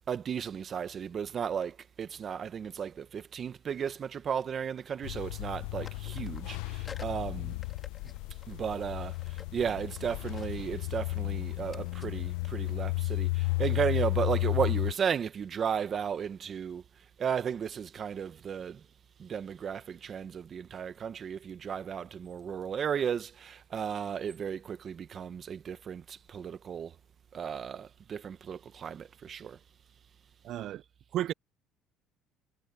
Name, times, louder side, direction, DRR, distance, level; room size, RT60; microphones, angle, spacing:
voice 1, 0.1-7.6 8.5-16.8 17.2-18.8 19.2-26.9 27.3-29.6, right 7 dB, 40° right, 1.0 m, -34 dB
sound 1, 1.7-1.9 3.2-4.5 4.8-5.5 5.8-13.6, left 5 dB, 25° left, 2.8 m, -55 dB
sound 2, 5.0-14.9, left 23 dB, 90° left, 0.6 m, -33 dB
voice 2, 30.4-30.8 31.1-31.3, right 13 dB, 55° right, 0.3 m, -32 dB
cardioid pair, 125°, 0 cm